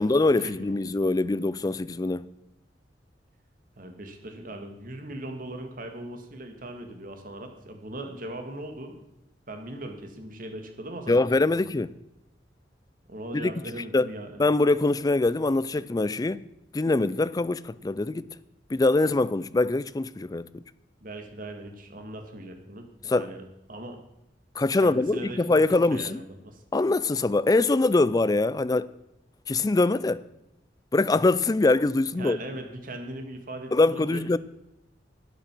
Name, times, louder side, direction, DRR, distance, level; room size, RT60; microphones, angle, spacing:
voice 1, 0.0-2.3 11.1-11.9 13.3-13.5 13.9-14.1 14.4-16.4 16.7-18.3 18.7-20.6 23.0-23.3 24.6-26.2 26.7-28.9 29.5-30.2 30.9-32.4 33.7-34.4, left 2 dB, 20° left, 0.3 m, -23 dB
voice 2, 3.8-9.0 9.5-11.6 13.1-14.4 21.0-22.9 23.1-23.4 23.7-24.0 24.8-25.4 25.7-26.6 32.2-34.2, right 1 dB, 50° right, 1.9 m, -39 dB
12.0 x 9.1 x 6.1 m
head